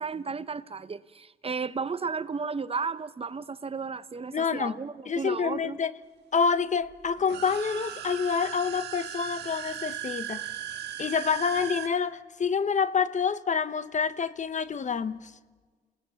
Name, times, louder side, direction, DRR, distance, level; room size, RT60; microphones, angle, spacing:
voice 1, 0.0-5.8, right 5 dB, 35° right, 0.8 m, -34 dB
voice 2, 4.3-4.8 5.1-5.9 6.3-10.5 11.0-15.3, left 6 dB, 45° left, 0.9 m, -27 dB
sound 1, 7.2-11.9, right 11 dB, 75° right, 1.5 m, -37 dB
28.5 x 18.0 x 7.0 m
cardioid pair, 65°, 17 cm